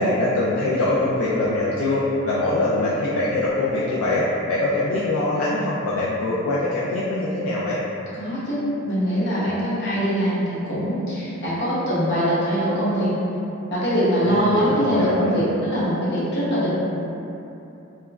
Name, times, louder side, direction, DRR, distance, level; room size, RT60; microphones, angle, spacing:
voice 1, 0.0-7.8 14.2-15.4, left 2 dB, 70° left, -7 dB, 0.3 m, -23 dB
voice 2, 8.2-13.1 13.7-16.7, equal, 55° left, -10 dB, 0.8 m, -22 dB
2.9 x 2.2 x 2.3 m, 2.9 s
head